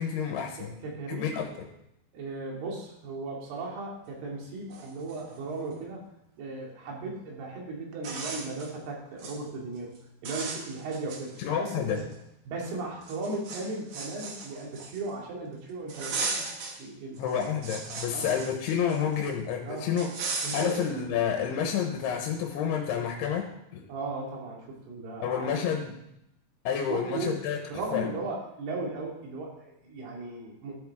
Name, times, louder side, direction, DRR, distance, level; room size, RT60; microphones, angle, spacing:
voice 1, 0.0-0.7 1.1-1.7 11.4-12.0 17.2-20.1 20.5-23.9 25.2-26.0 26.6-27.6 27.9-28.1, left 8 dB, 85° left, 2 dB, 3.0 m, -29 dB
voice 2, 0.8-1.4 2.1-6.1 6.4-9.9 10.2-12.0 12.5-16.3 16.8-17.3 18.1-18.3 19.6-19.8 20.4-20.9 23.9-25.7 26.9-27.4 27.7-30.8, right 3 dB, 80° right, -2 dB, 4.2 m, -36 dB
sound 1, 4.3-4.4 4.7-5.8 7.3-7.4 7.9-8.7 9.1-9.4 9.8-10.0 10.2-11.7 12.1-12.2 13.0-15.2 15.9-16.8 17.2-19.3 20.0-20.9, right 4 dB, 60° right, 2.0 m, -37 dB
14.0 x 8.3 x 3.5 m, 0.81 s
omnidirectional pair, 4.6 m